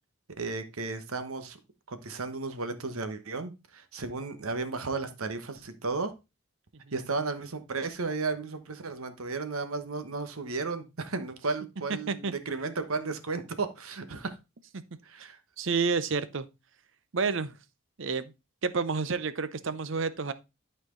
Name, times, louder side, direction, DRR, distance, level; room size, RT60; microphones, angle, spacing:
voice 1, 0.4-1.6 1.9-6.1 6.9-14.3 15.0-15.4 19.6-19.8, right 3 dB, 85° right, 1.1 m, -34 dB
voice 2, 15.6-16.5 17.1-17.5 18.0-18.3 18.6-20.3, right 5 dB, 60° right, 0.7 m, -29 dB
11.5 x 4.4 x 3.8 m
head